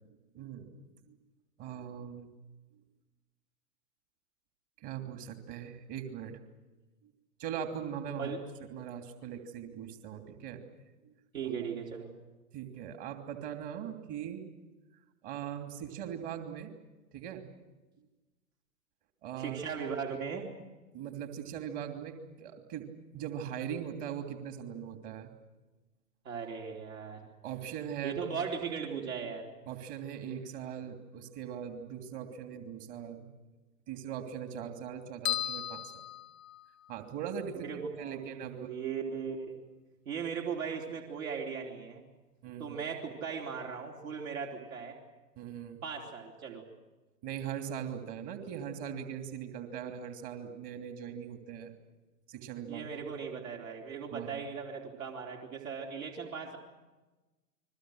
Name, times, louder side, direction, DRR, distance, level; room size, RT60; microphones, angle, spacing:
voice 1, 0.3-1.2 1.6-2.3 4.8-6.3 7.0-7.1 7.4-8.3 8.7-10.6 11.0-11.1 12.5-14.5 15.2-16.7 17.1-17.4 18.0-18.1 19.2-19.6 20.9-25.3 27.4-28.2 29.7-33.3 33.9-36.0 36.9-38.7 42.4-42.8 45.4-45.8 47.2-51.7 52.3-52.8 54.1-54.4, right 8 dB, 30° right, 6 dB, 3.0 m, -40 dB
voice 2, 11.3-12.2 19.4-20.5 26.2-27.3 28.0-29.5 37.6-39.6 40.1-42.0 42.6-45.0 45.8-46.7 52.7-56.6, right 6 dB, 55° right, 1 dB, 4.0 m, -38 dB
sound 1, 35.2-37.0, left 10 dB, 55° left, 0.7 m, -36 dB
30.0 x 22.0 x 6.5 m, 1.1 s
figure-of-eight pair, 110°, 48 cm